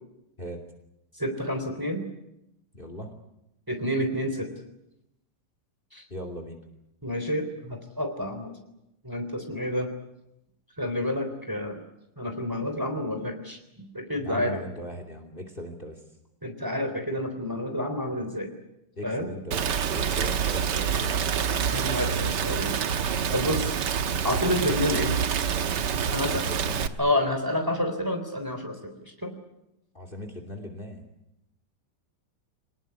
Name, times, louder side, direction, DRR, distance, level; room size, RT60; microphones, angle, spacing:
voice 1, 1.2-2.1 3.7-4.5 5.9-6.0 7.0-8.5 9.0-9.9 10.8-11.8 12.2-14.6 16.4-18.5 19.0-19.3 21.7-23.0 23.3-23.6 24.2-25.1 26.1-26.4 27.0-29.3, left 1 dB, 10° right, 5 dB, 3.6 m, -29 dB
voice 2, 2.7-3.1 6.1-6.6 14.2-16.0 19.0-19.6 19.9-21.2 23.3-23.7 26.1-26.9 29.9-31.0, equal, 30° left, 6 dB, 2.9 m, -39 dB
Rain, 19.5-26.9, right 7 dB, 75° right, 1.7 m, -27 dB
24.5 x 19.5 x 9.6 m, 0.88 s
omnidirectional pair, 2.0 m